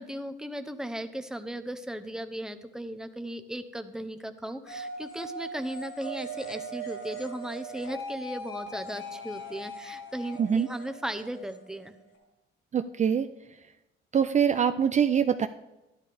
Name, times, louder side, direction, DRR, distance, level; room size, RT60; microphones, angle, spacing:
voice 1, 0.0-12.0, right 1 dB, 5° right, 9 dB, 0.9 m, -37 dB
sound 1, 4.7-12.2, right 1 dB, 80° left, 4.5 m, -40 dB
voice 2, 12.7-13.3 14.1-15.5, right 7 dB, 35° right, 9 dB, 0.4 m, -24 dB
12.0 x 11.0 x 3.5 m, 0.98 s
cardioid pair, 90°, 20 cm